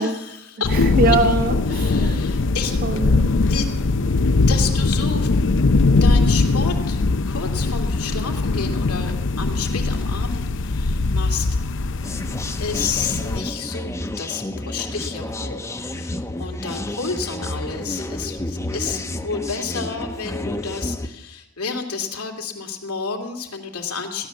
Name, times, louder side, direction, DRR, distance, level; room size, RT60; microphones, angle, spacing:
voice 1, 0.0-0.9 1.7-2.7 3.5-3.7 4.5-5.3 6.0-11.5 12.6-15.6 15.8-24.3, left 5 dB, 75° left, 4 dB, 2.5 m, -30 dB
sound 1, 0.6-13.4, left 3 dB, 60° left, 0.7 m, -20 dB
voice 2, 0.7-2.2 2.8-3.3, right 3 dB, 40° right, 7 dB, 1.1 m, -23 dB
sound 2, 12.0-21.1, left 1 dB, 15° left, 0.8 m, -30 dB
16.0 x 11.5 x 7.0 m, 0.87 s
head